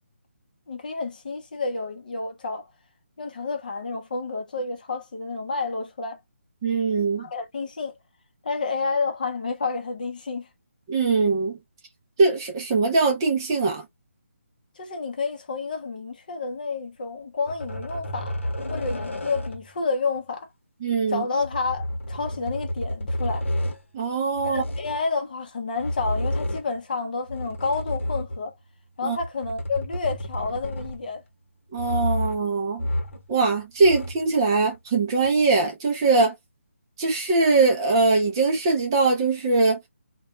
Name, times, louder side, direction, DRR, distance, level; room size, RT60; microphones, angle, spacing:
voice 1, 0.7-2.7 3.2-6.2 7.2-7.9 8.4-10.5 14.8-18.4 18.7-20.5 21.1-23.5 24.4-28.5 29.0-31.2, left 4 dB, 40° left, 0.6 m, -30 dB
voice 2, 6.6-7.3 10.9-11.5 12.2-13.8 20.8-21.3 23.9-24.6 29.0-29.2 31.7-32.8 33.3-36.3 37.0-39.8, right 3 dB, 20° right, 0.5 m, -21 dB
sound 1, 17.5-19.8 21.4-23.8 24.4-25.0 25.8-26.8 27.3-28.5 29.1-31.2 31.8-32.5 32.8-33.3 33.6-34.3 35.2-35.3, left 1 dB, 75° left, 0.9 m, -30 dB
2.2 x 2.1 x 3.0 m
hypercardioid pair, 170°, 7 cm